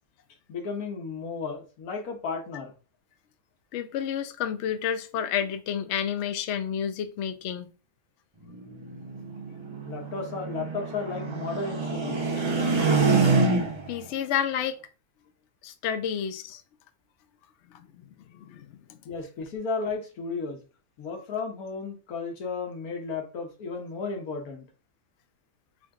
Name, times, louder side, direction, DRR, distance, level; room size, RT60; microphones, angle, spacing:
voice 1, 0.5-2.7 9.9-12.4 19.0-20.6 21.0-24.7, left 4 dB, 85° left, 1.4 m, -34 dB
voice 2, 3.7-7.7 13.9-14.8 15.6-16.6 17.7-18.0 18.4-18.7, left 8 dB, 65° left, 0.7 m, -30 dB
sound 1, 8.5-14.0, right 4 dB, 40° right, 0.4 m, -26 dB
3.8 x 3.7 x 2.3 m
omnidirectional pair, 1.5 m